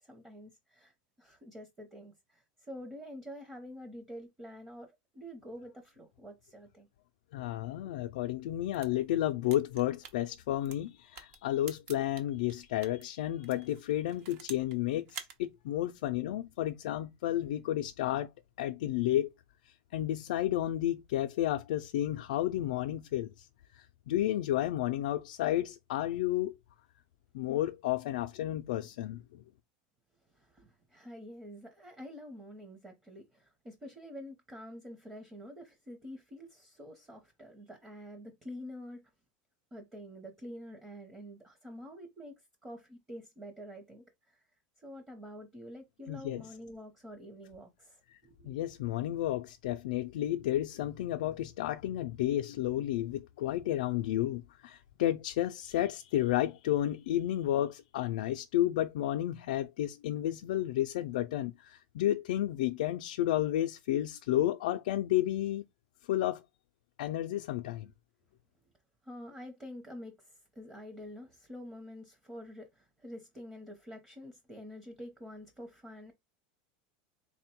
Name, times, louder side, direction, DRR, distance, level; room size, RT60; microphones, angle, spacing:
voice 1, 0.0-0.9 1.2-6.9 30.3-39.1 39.7-44.4 44.8-48.6 69.0-76.1, equal, 15° right, 0.8 m, -47 dB
voice 2, 7.3-18.3 18.6-19.3 19.7-23.5 23.7-26.5 27.3-29.4 46.1-46.5 48.1-48.2 48.4-65.6 66.1-66.4 67.0-67.9, left 13 dB, 80° left, 0.4 m, -32 dB
sound 1, 8.5-13.0 13.4-14.8 15.1-15.4, right 7 dB, 50° right, 0.8 m, -48 dB
3.5 x 2.2 x 4.3 m
supercardioid pair, 155°, 4 cm